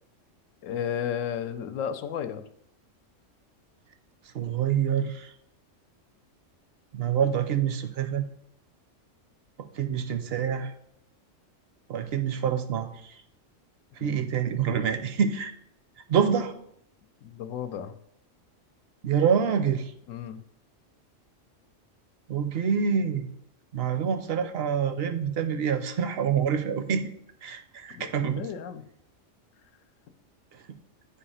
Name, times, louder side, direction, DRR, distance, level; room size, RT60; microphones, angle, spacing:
voice 1, 0.6-2.4 14.0-14.3 17.2-18.0 20.1-20.4 27.9-28.9, left 8 dB, 80° left, 10 dB, 1.0 m, -33 dB
voice 2, 4.3-5.3 6.9-8.3 9.6-10.7 11.9-13.1 14.0-15.5 16.1-16.5 19.0-19.9 22.3-23.3 23.7-27.1 27.4-28.5 30.7-30.8, right 7 dB, 60° right, 8 dB, 0.7 m, -26 dB
8.4 x 2.8 x 5.5 m, 0.72 s
omnidirectional pair, 1.3 m